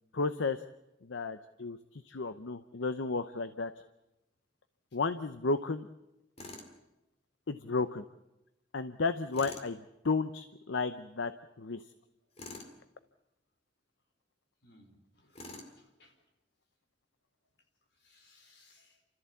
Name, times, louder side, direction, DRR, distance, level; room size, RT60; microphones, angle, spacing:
voice 1, 0.1-0.6 1.0-3.7 4.9-5.9 7.5-8.0 8.7-9.8 10.0-11.3 11.6-11.8, left 4 dB, 90° left, 11 dB, 0.8 m, -33 dB
Tools, 6.4-6.7 9.3-9.7 12.4-12.7 15.3-15.8, left 2 dB, 35° left, 2.4 m, -45 dB
voice 2, 14.6-16.2 17.9-19.0, left 2 dB, 65° left, 4 dB, 4.3 m, -64 dB
30.0 x 14.0 x 8.4 m, 0.94 s
head